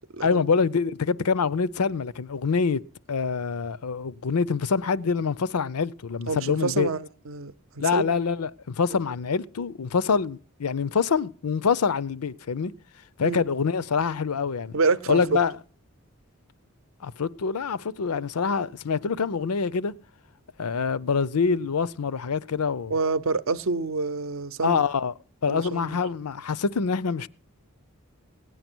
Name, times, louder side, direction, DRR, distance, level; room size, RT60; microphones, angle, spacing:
voice 1, 0.2-2.8 3.1-6.9 7.8-12.7 13.2-14.7 15.1-15.5 17.0-19.9 20.6-22.9 24.6-25.1 25.4-27.3, left 5 dB, 90° left, 0.6 m, -25 dB
voice 2, 6.3-8.0 13.2-13.4 14.7-15.4 22.9-24.8 25.5-26.0, right 4 dB, 65° right, 0.6 m, -27 dB
17.0 x 9.4 x 6.1 m
head